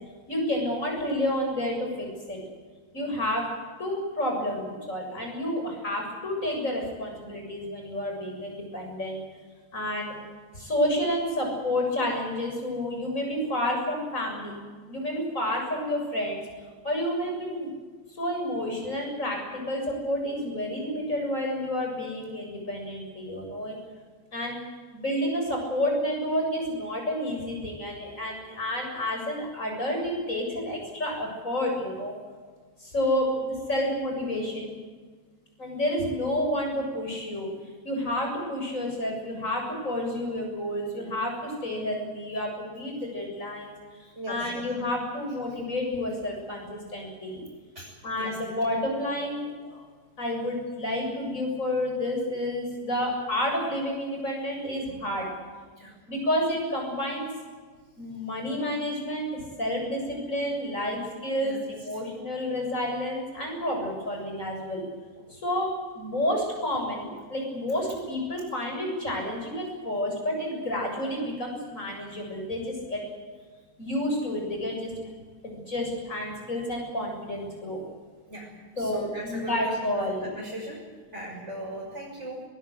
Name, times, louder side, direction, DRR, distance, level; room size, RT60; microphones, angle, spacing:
voice 1, 0.3-2.4 2.9-3.5 3.8-9.2 9.7-10.1 10.5-14.6 14.9-16.4 16.8-17.7 18.1-23.8 24.3-24.6 24.9-32.1 32.8-34.7 35.6-37.5 37.8-43.7 44.0-47.4 48.0-49.9 50.2-55.3 56.1-57.3 58.0-64.8 65.3-73.0 73.8-74.9 75.4-77.8 78.8-80.3, left 1 dB, 55° left, 1 dB, 7.9 m, -30 dB
voice 2, 44.1-44.6 47.7-48.4 55.8-55.9 61.4-61.6 65.2-65.3 78.3-78.5 78.7-80.8 81.1-82.4, right 1 dB, 45° right, -5 dB, 6.6 m, -38 dB
22.5 x 20.5 x 8.2 m, 1.5 s
omnidirectional pair, 1.6 m